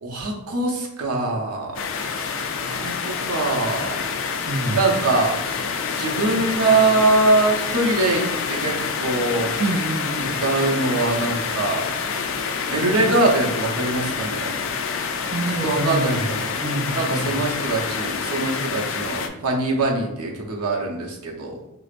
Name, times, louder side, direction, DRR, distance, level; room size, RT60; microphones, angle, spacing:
voice 1, 0.0-1.8 2.0-2.3 2.6-4.0 4.7-5.4 6.0-9.5 10.4-11.9 12.7-14.7 15.6-16.5 16.9-21.5, right 2 dB, 85° right, 0 dB, 0.7 m, -23 dB
sound 1, 1.7-19.3, left 5 dB, 60° left, 0.3 m, -27 dB
voice 2, 4.5-4.8 9.6-10.4 15.3-16.2 16.6-17.4, right 1 dB, 30° right, 0 dB, 0.3 m, -26 dB
4.8 x 2.0 x 2.4 m, 0.91 s
head